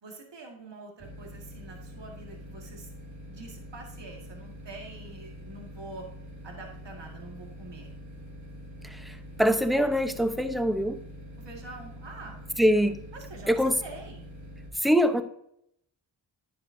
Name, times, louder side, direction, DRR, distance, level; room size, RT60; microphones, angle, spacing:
voice 1, 0.0-2.9 3.3-6.1 6.4-8.0 11.4-12.4 13.1-14.3, right 2 dB, 65° right, 1 dB, 2.0 m, -45 dB
sound 1, 1.0-14.7, equal, 40° right, 2.3 m, -45 dB
voice 2, 8.8-11.0 12.6-13.0 13.5-13.8 14.7-15.2, equal, ahead, 9 dB, 0.9 m, -24 dB
9.8 x 7.9 x 2.7 m, 0.73 s
cardioid pair, 45°, 47 cm